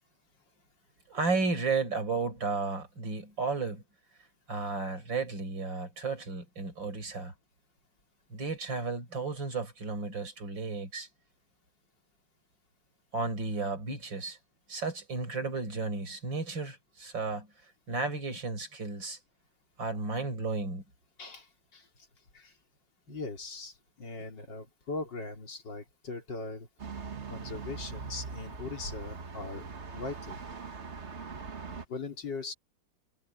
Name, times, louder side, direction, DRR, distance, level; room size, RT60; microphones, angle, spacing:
voice 1, 1.1-3.8 4.5-7.3 8.3-11.1 13.1-14.4 14.7-17.5 17.9-19.2 19.8-20.8 24.2-24.3, right 4 dB, 90° right, 5.8 m, -33 dB
voice 2, 21.2-21.9 22.3-22.5 23.1-26.7 27.3-29.6 29.9-30.4 31.7-32.5, left 3 dB, 75° left, 3.9 m, -40 dB
sound 1, 26.8-31.9, right 5 dB, 40° right, 1.5 m, -41 dB
omnidirectional pair, 2.0 m